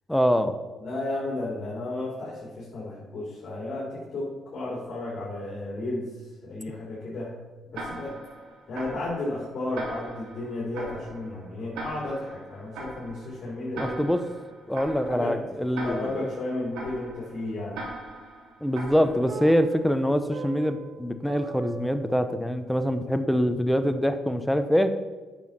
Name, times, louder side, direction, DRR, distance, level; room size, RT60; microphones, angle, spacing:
voice 1, 0.1-0.6 13.8-14.2 14.7-16.1 18.6-24.9, equal, 5° left, 9 dB, 0.8 m, -24 dB
voice 2, 0.8-6.1 6.4-7.3 7.7-8.2 8.7-14.0 15.0-15.3 15.8-17.8, left 2 dB, 55° left, -6 dB, 3.3 m, -33 dB
Tick-tock, 7.7-19.6, right 2 dB, 90° right, 3.0 m, -41 dB
sound 1, 19.3-22.8, right 4 dB, 70° right, 0.8 m, -41 dB
9.1 x 6.3 x 5.8 m, 1.3 s
cardioid pair, 90°, 0 cm